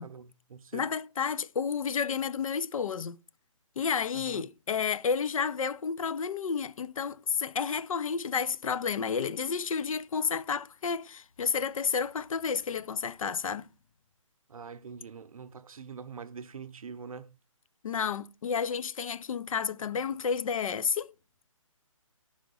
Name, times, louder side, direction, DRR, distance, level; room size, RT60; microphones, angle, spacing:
voice 1, 0.0-0.9 4.1-4.5 14.5-17.4, right 6 dB, 85° right, 0.7 m, -44 dB
voice 2, 0.7-3.2 3.8-13.7 17.8-21.1, left 6 dB, 75° left, 0.4 m, -31 dB
4.9 x 3.7 x 5.2 m
hypercardioid pair, 165°, 17 cm